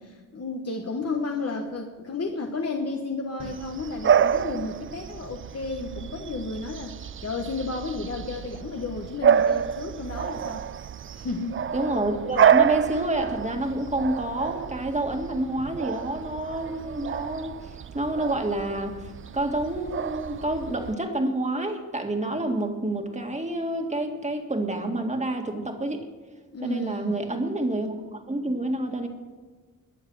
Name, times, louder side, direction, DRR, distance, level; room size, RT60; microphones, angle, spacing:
voice 1, 0.0-10.7 11.1-11.6 26.5-27.2, left 3 dB, 45° left, 2 dB, 1.3 m, -32 dB
Bark / Bird vocalization bird call bird song, 3.4-20.9, right 8 dB, 40° right, 0.4 m, -28 dB
voice 2, 11.7-26.1 26.6-29.1, right 1 dB, 20° right, 4 dB, 2.0 m, -28 dB
21.0 x 7.3 x 6.4 m, 1.3 s
cardioid pair, 80°, 33 cm